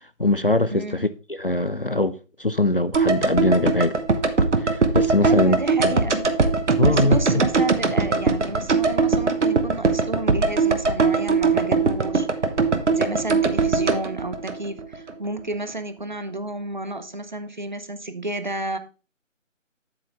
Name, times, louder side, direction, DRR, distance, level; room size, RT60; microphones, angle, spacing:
voice 1, 0.2-4.0 4.6-5.6 5.8-6.0 6.8-7.4, left 2 dB, 45° left, 0.4 m, -22 dB
voice 2, 0.7-1.0 5.2-6.3 6.8-12.3 12.9-18.8, right 2 dB, 35° right, 0.7 m, -31 dB
sound 1, 2.9-15.1 15.4-15.5, right 4 dB, 60° right, 1.1 m, -21 dB
8.0 x 7.7 x 3.4 m
figure-of-eight pair, 165°, 39 cm